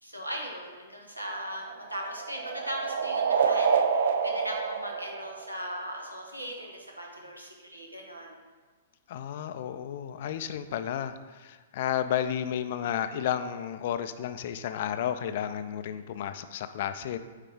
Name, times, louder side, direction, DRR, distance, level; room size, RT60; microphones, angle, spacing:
voice 1, 0.0-3.7 4.0-8.4, equal, 90° right, 0 dB, 1.2 m, -38 dB
sound 1, 1.2-6.0, right 6 dB, 60° right, 0.4 m, -28 dB
voice 2, 9.1-17.2, left 10 dB, 50° left, 10 dB, 0.4 m, -32 dB
9.2 x 3.3 x 3.6 m, 1.4 s
figure-of-eight pair, 110°, 0 cm